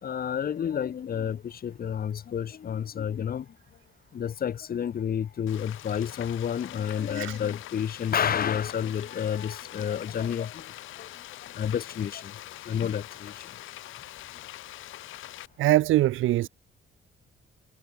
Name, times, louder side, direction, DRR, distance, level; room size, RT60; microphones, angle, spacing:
voice 1, 0.0-3.5 4.1-11.1 11.4-12.4 12.6-13.5, left 8 dB, 50° left, 1.2 m, -30 dB
Frying (food), 5.5-15.5, left 15 dB, 90° left, 6.4 m, -44 dB
voice 2, 15.6-16.5, right 15 dB, 85° right, 1.3 m, -22 dB
cardioid pair, 90°, 20 cm